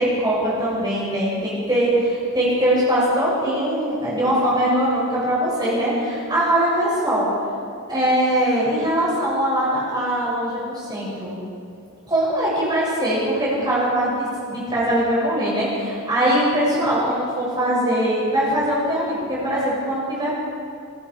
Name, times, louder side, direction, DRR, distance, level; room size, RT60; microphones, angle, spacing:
voice 1, 0.0-1.9 2.3-7.3 7.9-11.4 12.1-20.3, right 1 dB, 20° right, -8 dB, 7.4 m, -21 dB
26.5 x 23.5 x 5.0 m, 2.4 s
head